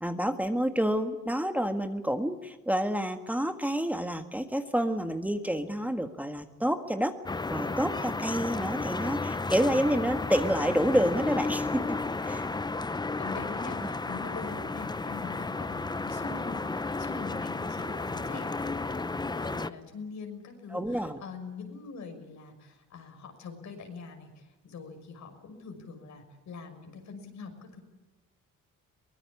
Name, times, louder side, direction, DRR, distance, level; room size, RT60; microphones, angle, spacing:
voice 1, 0.0-7.1 7.5-11.8 12.2-12.5 13.8-13.9 20.7-21.2, equal, 5° right, 6 dB, 1.7 m, -28 dB
sound 1, 7.3-19.7, left 3 dB, 15° left, 0.8 m, -33 dB
voice 2, 12.9-27.8, left 4 dB, 65° left, 5 dB, 6.0 m, -43 dB
23.5 x 19.0 x 8.5 m, 1.1 s
cardioid pair, 90°, 30 cm